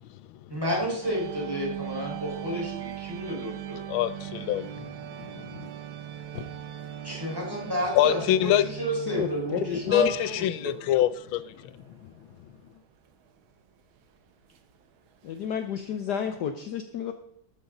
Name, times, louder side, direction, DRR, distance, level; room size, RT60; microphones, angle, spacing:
voice 1, 0.5-3.8 7.0-10.7, equal, 10° right, 4.3 m, -31 dB
sound 1, 1.0-16.4, right 11 dB, 85° right, 1.8 m, -41 dB
voice 2, 3.9-4.7 5.2-5.3 5.6-5.7 7.9-8.6 9.9-11.5, left 13 dB, 90° left, 1.4 m, -24 dB
voice 3, 9.1-10.1 15.2-17.1, left 8 dB, 65° left, 1.3 m, -31 dB
13.0 x 12.0 x 3.9 m
omnidirectional pair, 2.2 m